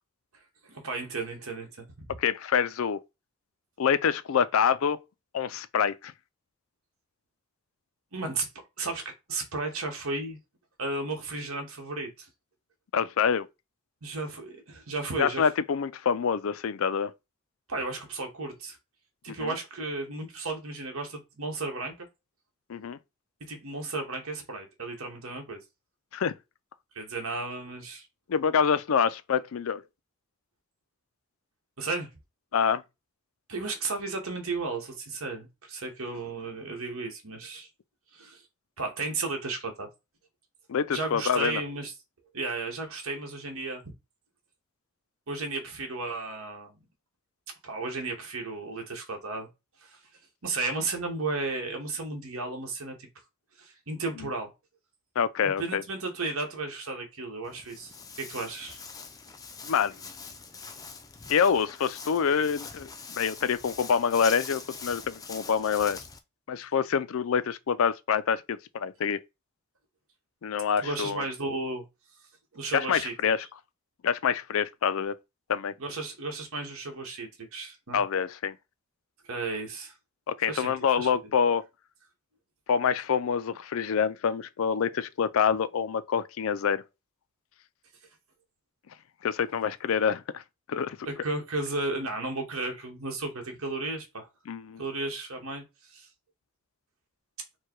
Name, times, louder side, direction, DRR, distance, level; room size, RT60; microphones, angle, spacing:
voice 1, 0.6-2.1 8.1-10.4 10.8-12.3 14.0-15.5 17.7-18.8 19.2-22.1 23.5-25.6 26.9-28.1 31.8-32.1 33.5-37.7 38.1-38.4 38.8-39.9 40.9-41.9 42.3-43.8 45.3-46.8 47.6-49.5 49.8-50.0 50.4-53.1 53.6-54.5 55.4-58.8 70.8-71.8 72.5-73.1 75.8-78.0 79.3-79.9 80.5-80.7 81.0-81.1 91.0-94.3 94.8-95.6 95.9-96.1, right 3 dB, 80° right, 1.3 m, -34 dB
voice 2, 2.2-3.0 3.8-5.0 5.3-6.1 12.9-13.5 15.2-17.1 19.3-19.5 22.7-23.0 26.1-26.3 28.3-29.8 32.5-32.8 40.7-41.6 55.2-55.8 59.6-59.9 61.3-62.9 63.2-66.0 66.5-69.2 70.4-71.2 72.7-73.4 74.0-75.1 75.5-75.7 77.9-78.5 80.3-81.6 82.7-86.8 89.2-90.4 90.7-91.0 94.5-94.8, left 7 dB, 70° left, 0.4 m, -26 dB
Walk footsteps, 57.4-66.2, left 5 dB, 15° left, 0.4 m, -43 dB
4.6 x 2.3 x 4.5 m
head